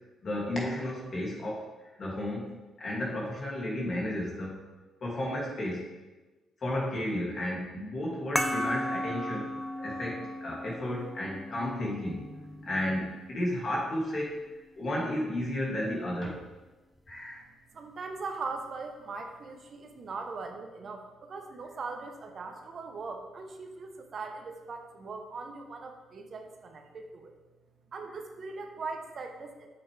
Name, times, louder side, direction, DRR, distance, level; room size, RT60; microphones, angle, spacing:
voice 1, 0.2-1.7 2.0-4.6 5.0-5.9 6.6-9.5 9.8-14.4 14.8-16.4 17.1-17.4, left 1 dB, 45° left, -3 dB, 2.5 m, -33 dB
sound 1, 8.4-13.4, equal, 5° left, 0.6 m, -36 dB
voice 2, 17.7-27.3 27.9-29.7, right 4 dB, 50° right, 4 dB, 1.0 m, -40 dB
8.4 x 6.8 x 3.4 m, 1.2 s
cardioid pair, 90°, 0 cm